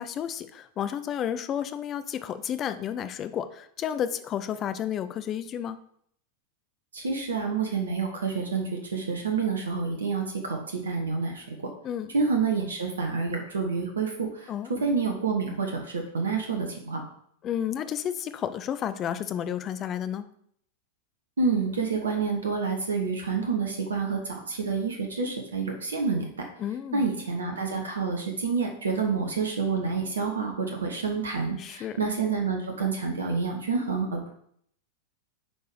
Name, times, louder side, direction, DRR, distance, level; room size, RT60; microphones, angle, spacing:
voice 1, 0.0-5.8 11.8-12.1 14.5-14.8 17.4-20.3 26.6-27.1 31.6-32.0, left 9 dB, 30° left, 11 dB, 0.6 m, -31 dB
voice 2, 6.9-11.5 12.1-17.0 21.4-26.3 26.9-34.3, right 4 dB, 70° right, 3 dB, 1.1 m, -28 dB
7.9 x 4.7 x 4.8 m, 0.67 s
figure-of-eight pair, 90°, 0 cm